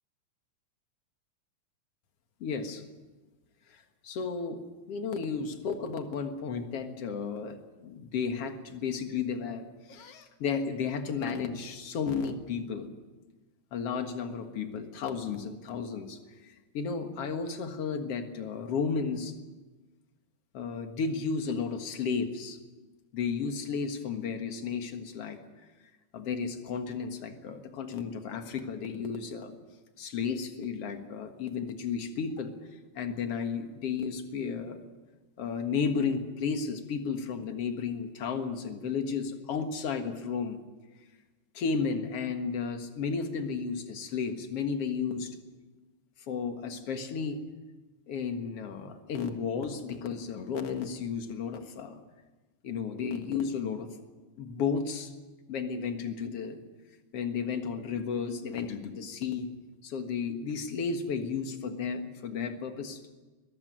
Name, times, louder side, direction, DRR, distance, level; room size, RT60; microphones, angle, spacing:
voice 1, 2.4-2.8 3.7-4.6 4.9-12.9 13.7-16.2 16.4-19.3 20.5-22.6 23.1-25.4 26.1-29.6 30.0-32.6 33.0-34.8 35.4-40.6 41.5-45.4 46.3-47.4 48.1-52.0 52.6-53.9 54.4-55.1 55.5-56.6 57.1-59.5 59.8-63.1, left 5 dB, 50° left, 6 dB, 2.4 m, -33 dB
22.5 x 14.5 x 9.3 m, 1.2 s
omnidirectional pair, 3.7 m